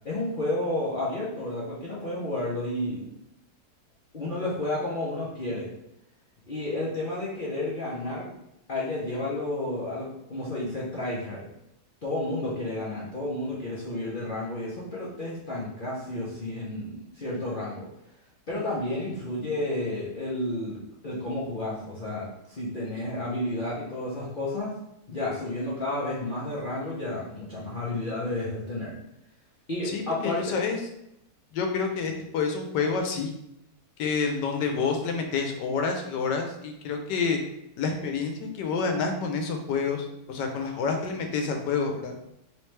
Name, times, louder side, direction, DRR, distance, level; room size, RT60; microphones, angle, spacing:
voice 1, 0.0-3.1 4.1-5.7 6.5-8.3 8.7-11.4 12.0-17.9 18.5-24.7 25.1-28.9 29.7-30.6, left 1 dB, 50° left, -7 dB, 0.6 m, -31 dB
voice 2, 29.9-30.8 31.5-33.3 34.0-37.4 37.8-42.2, left 5 dB, 90° left, 4 dB, 1.3 m, -28 dB
3.2 x 3.2 x 3.2 m, 0.82 s
omnidirectional pair, 1.8 m